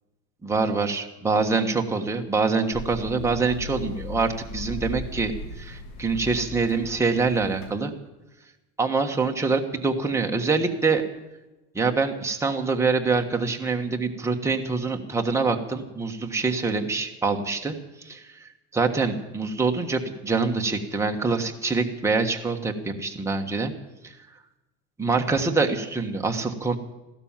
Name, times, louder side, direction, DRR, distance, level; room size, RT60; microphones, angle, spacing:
voice 1, 0.4-7.9 8.8-11.0 11.7-18.3 18.7-23.7 24.0-24.1 25.0-26.8, right 4 dB, 10° right, 2 dB, 1.4 m, -25 dB
sound 1, 2.7-7.7, left 3 dB, 55° left, 3.5 m, -37 dB
15.5 x 12.5 x 7.3 m, 1.0 s
supercardioid pair, 140°, 33 cm